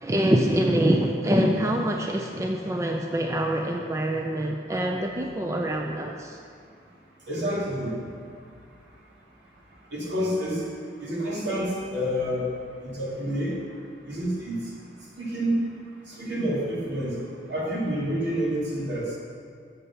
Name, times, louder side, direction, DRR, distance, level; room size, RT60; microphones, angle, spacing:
voice 1, 0.0-6.4, right 1 dB, 15° right, 2 dB, 0.4 m, -25 dB
voice 2, 7.3-7.9 9.9-10.6 11.0-12.5 12.8-13.6 14.1-14.6 15.2-15.7 16.2-17.2 17.5-19.1, equal, 75° right, -5 dB, 2.2 m, -28 dB
7.8 x 6.8 x 5.6 m, 2.2 s
head